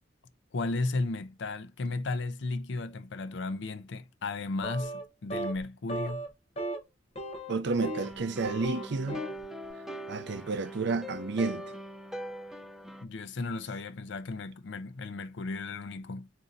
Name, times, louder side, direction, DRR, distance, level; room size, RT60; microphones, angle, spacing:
voice 1, 0.5-6.2 13.0-16.3, left 3 dB, 70° left, 0.5 m, -34 dB
sound 1, 4.6-5.1 5.3-5.6 5.9-6.3 6.6-6.8 7.2-8.1 8.4-9.4, right 1 dB, 35° left, 0.9 m, -36 dB
voice 2, 7.5-9.2 10.1-11.6, right 3 dB, 65° right, 0.5 m, -30 dB
sound 2, 8.0-13.0, right 1 dB, ahead, 0.4 m, -42 dB
4.1 x 2.7 x 3.7 m
head